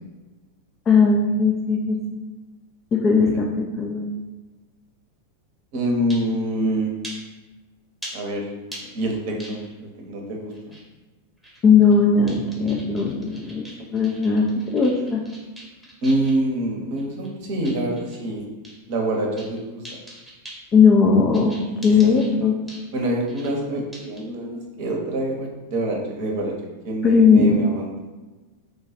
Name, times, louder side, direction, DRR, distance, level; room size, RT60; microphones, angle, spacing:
voice 1, 0.9-2.2 2.9-4.2 11.6-13.6 13.9-14.5 14.7-15.2 20.7-22.5 27.0-27.5, left 5 dB, 25° left, -1 dB, 0.4 m, -18 dB
voice 2, 5.7-6.9 8.1-8.5 8.9-10.8 16.0-18.4 18.9-19.8 22.2-22.5 22.9-26.5 26.8-27.9, right 1 dB, 45° right, 0 dB, 0.8 m, -26 dB
sound 1, 6.1-6.3 7.0-7.2 8.0-8.1 8.7-8.8 9.4-9.8 10.5-10.8 11.4-12.0 12.3-16.4 17.0-18.2 18.6-18.8 19.1-19.6 19.8-20.6 21.3-22.3 22.7-22.9 23.3-23.5 23.9-24.2, right 1 dB, ahead, 0.9 m, -41 dB
3.2 x 2.3 x 4.1 m, 1.2 s
figure-of-eight pair, 90°, 0 cm